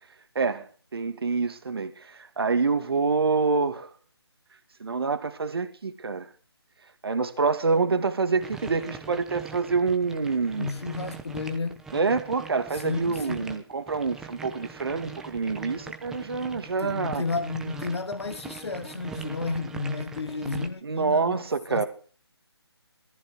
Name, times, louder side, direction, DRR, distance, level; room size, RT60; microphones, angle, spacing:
voice 1, 0.3-3.9 4.8-6.3 7.0-10.7 11.9-17.2 20.8-21.9, right 4 dB, 60° right, 2.3 m, -26 dB
sound 1, 8.4-20.7, right 5 dB, 5° right, 0.8 m, -42 dB
voice 2, 10.6-11.8 12.7-13.6 16.8-21.4 21.7-21.8, left 4 dB, 70° left, 1.5 m, -32 dB
18.5 x 14.0 x 4.7 m
figure-of-eight pair, 155°, 14 cm